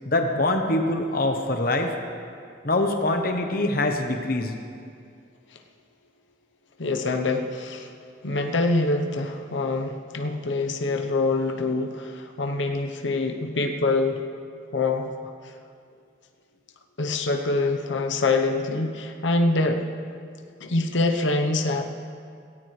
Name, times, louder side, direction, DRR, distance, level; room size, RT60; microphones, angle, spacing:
voice 1, 0.0-1.9 2.6-4.5, left 2 dB, 50° left, 4 dB, 1.0 m, -24 dB
voice 2, 6.8-7.9 8.2-14.2 14.7-15.6 17.0-19.9 20.6-21.8, left 2 dB, 90° left, 5 dB, 1.0 m, -25 dB
18.0 x 17.5 x 3.3 m, 2.3 s
head